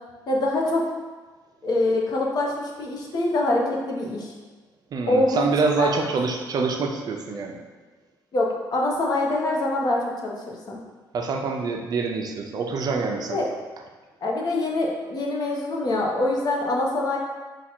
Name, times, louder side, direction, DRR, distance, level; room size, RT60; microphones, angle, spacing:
voice 1, 0.3-0.8 1.6-4.3 5.1-5.5 5.8-6.0 8.3-10.8 13.3-13.5 14.2-17.2, left 2 dB, 50° left, -2 dB, 0.9 m, -24 dB
voice 2, 4.9-7.6 11.1-13.4, right 4 dB, 50° right, 3 dB, 0.5 m, -26 dB
4.8 x 2.4 x 4.3 m, 1.3 s
cardioid pair, 120°, 8 cm